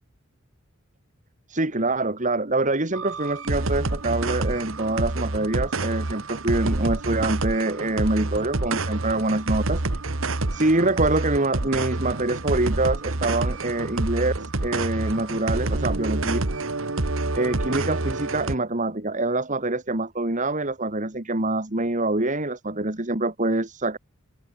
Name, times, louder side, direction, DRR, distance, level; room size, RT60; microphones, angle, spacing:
voice 1, 1.5-9.8 10.5-16.4 17.3-24.0, right 2 dB, 40° right, 2.6 m, -25 dB
sound 1, 2.9-18.5, right 2 dB, 75° right, 1.6 m, -27 dB
open air
head